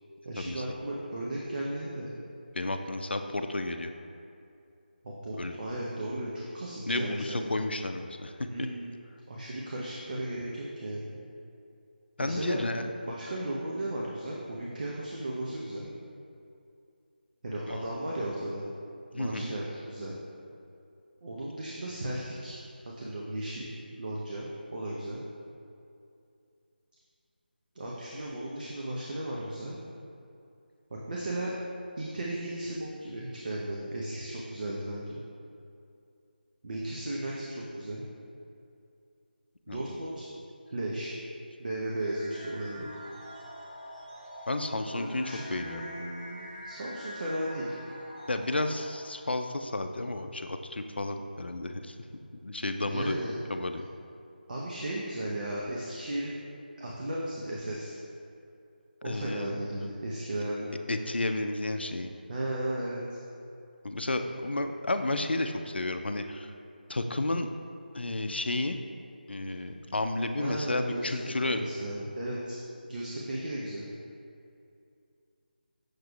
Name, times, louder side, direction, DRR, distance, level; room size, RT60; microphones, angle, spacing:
voice 1, 0.2-2.1 5.0-7.5 8.5-8.9 9.3-11.2 12.2-12.6 13.1-15.9 17.4-18.7 19.1-20.1 21.2-22.6 22.8-23.7 24.0-25.2 27.7-29.8 30.9-31.5 32.0-35.2 36.6-38.0 39.7-40.2 40.7-41.1 41.6-42.9 44.9-47.8 52.9-53.4 54.5-56.4 56.8-58.0 59.0-60.7 62.3-63.0 70.4-71.1 71.4-72.6 72.8-73.9, right 1 dB, 55° right, -4 dB, 0.7 m, -35 dB
voice 2, 2.5-3.9 5.3-5.6 6.9-8.3 8.6-8.7 12.2-12.9 17.7-17.8 19.1-19.5 39.7-40.0 44.5-45.8 48.3-51.9 52.4-53.2 53.5-53.8 59.0-59.7 60.9-62.1 63.8-66.5 66.9-67.5 67.9-68.8 69.3-71.6, left 2 dB, 90° left, 7 dB, 0.4 m, -32 dB
sound 1, 41.7-49.3, equal, 20° right, 1.1 m, -45 dB
6.5 x 6.1 x 2.3 m, 2.5 s
figure-of-eight pair, 165°, 6 cm